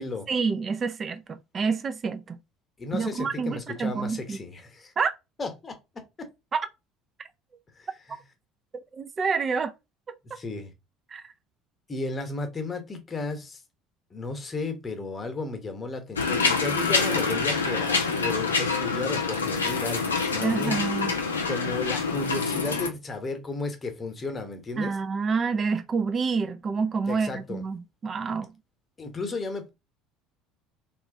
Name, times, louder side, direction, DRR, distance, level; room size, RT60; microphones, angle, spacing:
voice 1, 0.3-2.4 2.9-4.4 5.0-5.1 6.5-6.7 8.9-9.7 11.1-11.2 20.4-21.1 24.8-28.5, right 5 dB, 35° right, 0.4 m, -28 dB
voice 2, 2.8-4.9 5.4-6.3 7.8-8.2 10.3-10.7 11.9-13.6 14.1-20.8 21.5-25.0 27.1-27.7 29.0-29.7, left 3 dB, 25° left, 1.0 m, -34 dB
sound 1, 16.2-22.9, left 4 dB, 85° left, 0.5 m, -26 dB
3.0 x 2.5 x 3.7 m
figure-of-eight pair, 60°, 0 cm